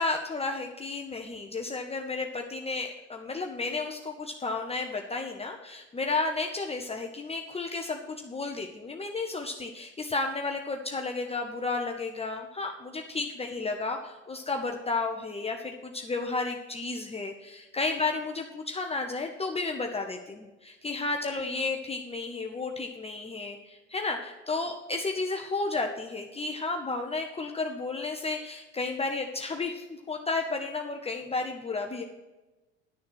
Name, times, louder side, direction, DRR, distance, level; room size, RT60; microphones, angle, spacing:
voice 1, 0.0-32.0, left 3 dB, 15° left, 3 dB, 1.0 m, -32 dB
11.5 x 6.9 x 6.3 m, 1.2 s
figure-of-eight pair, 70°, 38 cm